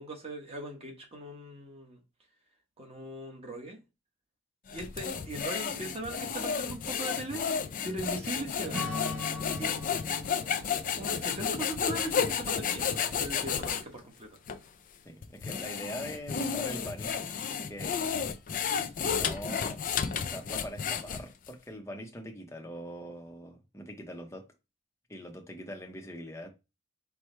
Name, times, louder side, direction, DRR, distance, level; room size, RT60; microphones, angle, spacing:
voice 1, 0.0-2.0 2.8-3.8 4.7-7.5 7.8-8.8 9.6-9.7 11.0-14.4, right 1 dB, 25° right, 1.1 m, -39 dB
sound 1, 4.7-13.8 14.5-14.6 15.2-21.5, left 7 dB, 35° left, 0.3 m, -32 dB
Strum, 8.7-13.4, left 3 dB, 10° right, 1.2 m, -41 dB
voice 2, 15.0-17.2 17.5-18.0 19.0-19.8 20.2-24.4 25.1-26.5, equal, 10° left, 0.7 m, -42 dB
4.6 x 2.2 x 4.4 m
head